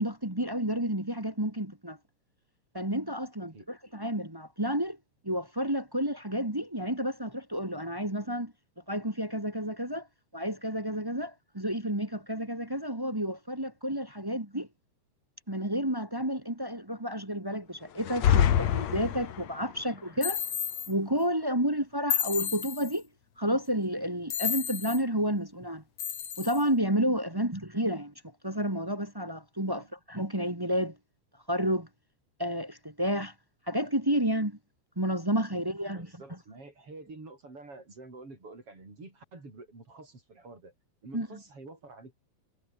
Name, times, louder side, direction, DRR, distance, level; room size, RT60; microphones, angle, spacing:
voice 1, 0.0-2.0 2.7-5.0 5.2-8.5 8.9-10.1 10.3-14.7 15.5-20.4 20.9-23.0 23.4-25.8 26.4-28.1 28.4-30.9 31.5-31.9 32.4-33.3 33.7-34.6 34.9-36.1 41.1-41.3, equal, 15° right, 0.8 m, -30 dB
sound 1, 18.0-19.7, left 10 dB, 65° left, 1.7 m, -25 dB
sound 2, 20.2-20.9 22.1-23.0 24.3-25.0 26.0-26.6, left 9 dB, 45° left, 2.5 m, -32 dB
voice 2, 35.5-40.7 41.0-42.1, right 3 dB, 30° right, 8.1 m, -48 dB
omnidirectional pair, 5.4 m